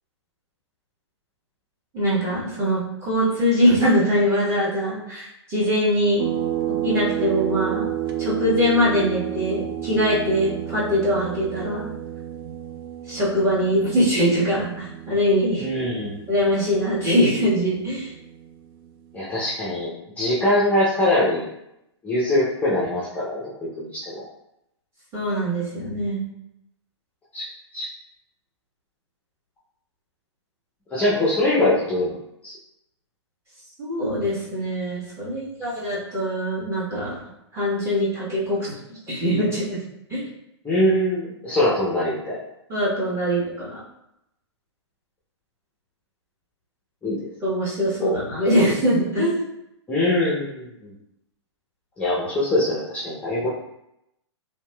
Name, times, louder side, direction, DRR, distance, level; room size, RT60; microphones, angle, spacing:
voice 1, 1.9-6.2 6.8-7.9 8.2-11.9 13.1-15.7 16.3-18.1 25.1-26.2 33.8-38.6 38.9-39.8 40.1-40.2 42.7-43.8 47.4-49.4, equal, 20° right, -8 dB, 1.4 m, -22 dB
sound 1, 6.2-19.3, right 11 dB, 50° right, 0.4 m, -31 dB
voice 2, 15.6-16.1 19.1-19.9 20.2-21.5 22.0-24.3 27.3-27.4 27.7-27.9 30.9-32.1 32.4-32.5 40.6-42.4 47.0-47.2 48.0-48.2 49.9-50.9 52.0-53.5, left 1 dB, 10° left, -8 dB, 0.6 m, -23 dB
2.9 x 2.9 x 2.2 m, 0.82 s
hypercardioid pair, 125°, 15 cm